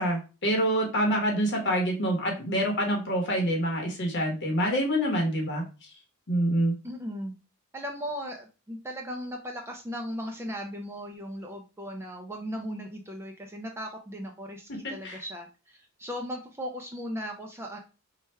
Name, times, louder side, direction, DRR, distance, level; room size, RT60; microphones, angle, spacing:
voice 1, 0.0-6.0 6.3-6.7 14.7-15.2, equal, 50° left, 0 dB, 0.9 m, -27 dB
voice 2, 6.8-7.3 7.7-17.8, equal, 10° right, 1 dB, 0.4 m, -37 dB
3.2 x 2.3 x 4.2 m, 0.32 s
head